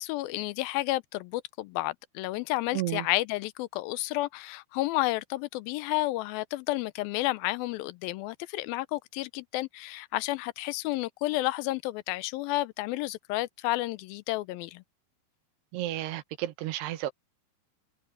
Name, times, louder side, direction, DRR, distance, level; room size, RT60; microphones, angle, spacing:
voice 1, 0.0-14.8, left 18 dB, 80° left, 2.3 m, -31 dB
voice 2, 2.7-3.1 15.7-17.1, right 15 dB, 85° right, 3.1 m, -32 dB
omnidirectional pair, 4.6 m